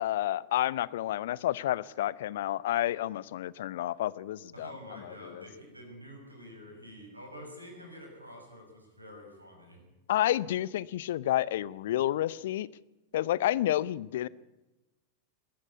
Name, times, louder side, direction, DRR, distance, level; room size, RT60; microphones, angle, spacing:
voice 1, 0.0-4.7 5.3-5.4 10.1-12.7 13.1-14.3, left 13 dB, 55° left, 22 dB, 0.6 m, -30 dB
voice 2, 4.5-9.8, equal, 85° right, 2 dB, 6.4 m, -47 dB
21.5 x 13.0 x 9.5 m, 1.0 s
figure-of-eight pair, 90°, 0 cm